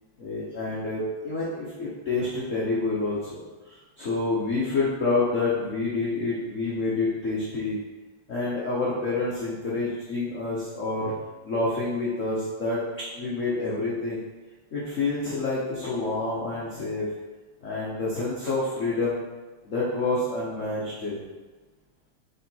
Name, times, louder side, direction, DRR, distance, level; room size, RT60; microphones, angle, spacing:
voice 1, 0.2-3.4 3.7-7.8 8.3-11.1 11.4-12.8 13.1-14.2 14.7-17.1 17.6-19.2 19.6-21.2, left 3 dB, 45° left, -6 dB, 1.2 m, -28 dB
6.6 x 3.8 x 4.6 m, 1.3 s
omnidirectional pair, 2.4 m